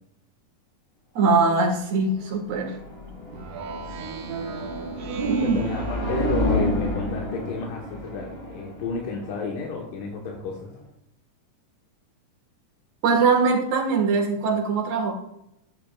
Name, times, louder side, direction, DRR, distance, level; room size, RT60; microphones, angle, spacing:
voice 1, 1.2-2.7 5.2-5.6 13.0-15.1, right 4 dB, 60° right, 3 dB, 2.5 m, -22 dB
sound 1, 1.8-10.8, left 1 dB, 25° left, 1.5 m, -30 dB
Speech synthesizer, 3.3-6.8, right 6 dB, 85° right, 2.6 m, -36 dB
voice 2, 5.3-10.7, left 4 dB, 85° left, -1 dB, 2.8 m, -32 dB
13.0 x 9.5 x 2.3 m, 0.79 s
omnidirectional pair, 3.7 m